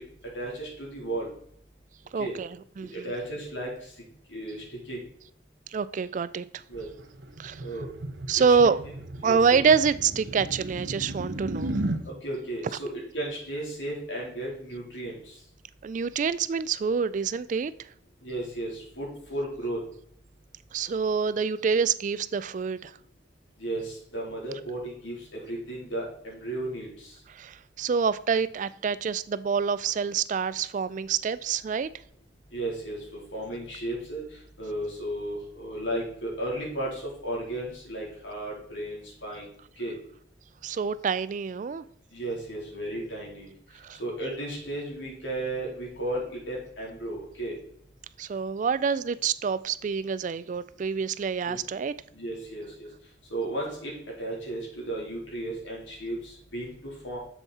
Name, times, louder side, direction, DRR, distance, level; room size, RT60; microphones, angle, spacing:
voice 1, 0.3-1.3 2.2-2.3 2.9-3.9 4.3-5.0 6.7-6.9 7.6-7.9 8.5-8.6 9.2-9.6 12.1-12.9 13.1-15.3 18.2-19.8 23.6-27.1 32.5-33.0 33.3-34.2 34.6-39.5 39.8-39.9 42.1-43.5 44.0-47.5 51.5-51.6 52.1-52.9 53.3-53.9 54.2-57.2, right 1 dB, 85° left, -3 dB, 3.6 m, -34 dB
voice 2, 2.1-3.1 5.7-6.4 7.4-7.6 8.3-8.8 9.2-11.8 15.8-17.7 20.7-22.9 27.3-31.9 40.6-41.8 43.8-44.0 48.2-51.9, right 6 dB, 40° right, 16 dB, 0.3 m, -26 dB
sound 1, 6.7-12.0, right 1 dB, 65° right, 0.8 m, -35 dB
7.1 x 7.1 x 4.2 m, 0.66 s
head